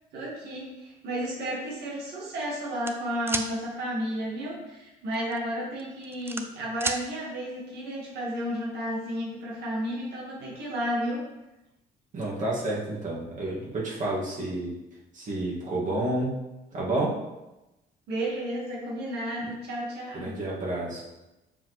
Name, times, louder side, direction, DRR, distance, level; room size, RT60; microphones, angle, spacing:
voice 1, 0.1-11.2 18.1-20.3, equal, 75° right, -5 dB, 1.9 m, -32 dB
sound 1, 2.8-3.5 5.1-5.4 5.8-7.0, right 2 dB, 15° right, 0.5 m, -31 dB
voice 2, 12.1-14.7 15.1-16.3 16.7-17.2 20.1-21.0, right 2 dB, 50° right, -5 dB, 2.2 m, -30 dB
7.2 x 4.6 x 3.3 m, 0.98 s
cardioid pair, 110°, 17 cm